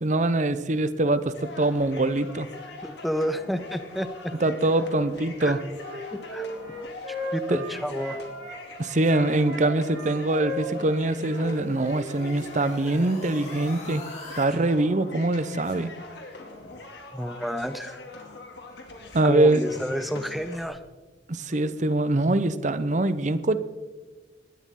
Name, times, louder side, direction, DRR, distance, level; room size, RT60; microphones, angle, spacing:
voice 1, 0.0-2.5 4.4-5.6 7.5-7.6 8.8-14.0 14.4-15.9 19.1-19.6 21.3-23.6, right 2 dB, 45° right, 13 dB, 0.8 m, -23 dB
sound 1, 1.3-20.7, left 3 dB, 70° left, 2.6 m, -43 dB
voice 2, 2.8-4.3 5.4-5.6 6.1-6.5 7.1-8.2 17.1-18.0 19.2-20.8, equal, ahead, 10 dB, 0.8 m, -30 dB
Wind instrument woodwind instrument, 5.3-8.6 9.0-12.4, left 1 dB, 80° right, 4.8 m, -37 dB
sound 2, 10.5-14.5, left 2 dB, 40° left, 3.3 m, -44 dB
18.5 x 12.5 x 3.8 m, 1.3 s
head